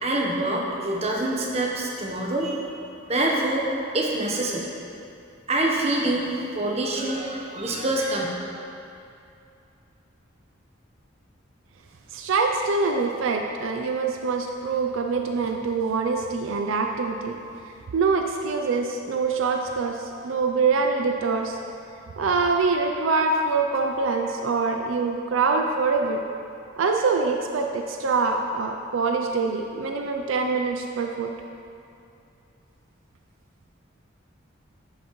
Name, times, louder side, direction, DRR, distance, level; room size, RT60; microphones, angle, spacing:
voice 1, 0.0-2.6 3.1-3.7 3.9-4.7 5.5-8.3, right 1 dB, 35° right, -1 dB, 1.0 m, -25 dB
voice 2, 12.1-17.4 17.9-21.6 22.2-26.2 26.8-31.3, right 4 dB, 80° right, 3 dB, 0.4 m, -24 dB
10.5 x 5.7 x 3.1 m, 2.6 s
head